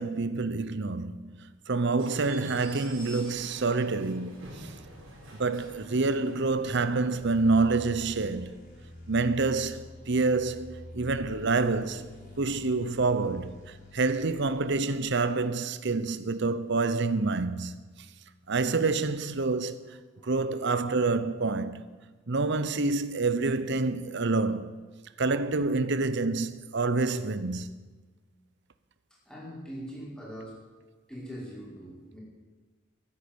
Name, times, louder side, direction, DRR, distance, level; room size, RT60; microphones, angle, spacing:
voice 1, 0.0-4.8 5.4-8.6 9.1-12.1 12.4-17.8 18.5-19.8 20.2-21.9 22.3-24.8 25.2-27.9, right 3 dB, 60° right, 0.8 m, -27 dB
sound 1, 2.0-8.1, right 1 dB, 75° right, 4.7 m, -48 dB
sound 2, 7.1-15.1, left 1 dB, 40° left, 4.5 m, -47 dB
voice 2, 20.2-20.8 29.2-30.6 31.1-32.2, equal, 5° left, 5.1 m, -42 dB
14.0 x 9.8 x 8.8 m
head